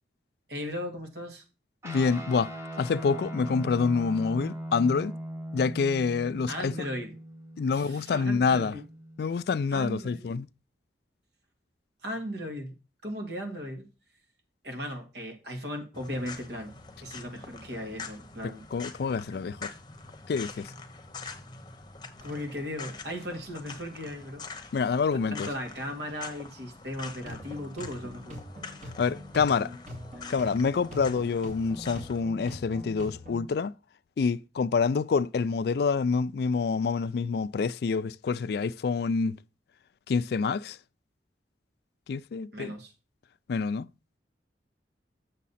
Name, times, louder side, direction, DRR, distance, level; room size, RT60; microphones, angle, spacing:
voice 1, 0.5-1.4 6.5-7.2 7.6-8.8 9.7-10.3 12.0-12.7 13.0-13.9 14.6-16.7 17.0-18.6 22.2-24.4 25.1-28.4 42.5-42.9, equal, 65° right, 2.0 m, -37 dB
voice 2, 1.8-2.5 2.8-5.2 5.5-6.7 7.6-8.7 9.2-10.5 18.7-19.7 20.3-20.7 24.7-25.5 29.0-29.8 30.3-33.7 34.2-39.4 40.1-40.8 42.1-42.7 43.5-43.9, left 5 dB, 60° left, 0.3 m, -27 dB
Guitar, 1.8-9.5, right 1 dB, 15° right, 1.3 m, -40 dB
sound 1, 15.9-32.2, left 4 dB, 25° left, 1.0 m, -45 dB
sound 2, 27.2-33.5, equal, 40° right, 2.3 m, -43 dB
7.3 x 6.6 x 4.1 m
head